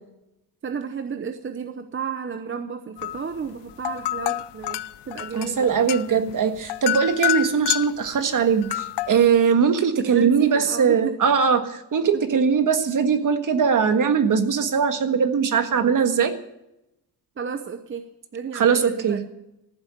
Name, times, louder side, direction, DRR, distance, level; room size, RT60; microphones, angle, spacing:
voice 1, 0.6-5.9 10.1-11.2 12.1-12.3 17.4-19.2, right 6 dB, 30° right, 7 dB, 0.8 m, -32 dB
sound 1, 3.0-3.3 3.7-8.1 8.6-9.2, left 14 dB, 80° left, 0.6 m, -28 dB
voice 2, 5.3-16.3 18.5-19.2, right 6 dB, 50° right, 8 dB, 1.5 m, -20 dB
14.5 x 7.9 x 9.5 m, 0.86 s
cardioid pair, 130°, 41 cm